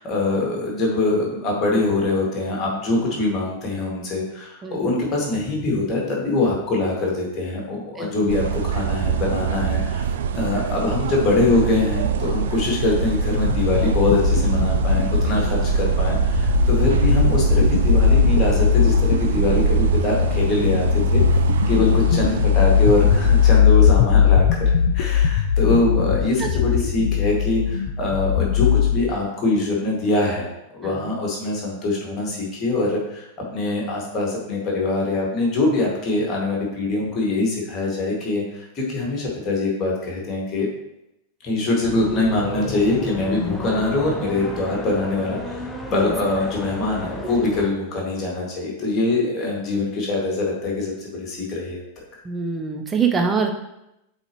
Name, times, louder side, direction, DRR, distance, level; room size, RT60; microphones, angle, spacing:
voice 1, 0.0-10.0 10.3-21.2 21.7-24.6 24.9-33.3 33.5-40.7 41.4-45.6 45.9-51.8, left 2 dB, 30° left, -2 dB, 2.1 m, -23 dB
sound 1, 8.3-23.6, right 7 dB, 60° right, 0.4 m, -23 dB
sound 2, 11.8-29.0, left 8 dB, 55° left, 0.4 m, -20 dB
sound 3, 41.8-47.7, left 1 dB, 10° left, 0.9 m, -33 dB
voice 2, 52.3-53.5, right 5 dB, 20° right, 3 dB, 0.7 m, -23 dB
7.8 x 4.0 x 3.1 m, 0.86 s
figure-of-eight pair, 90°, 0 cm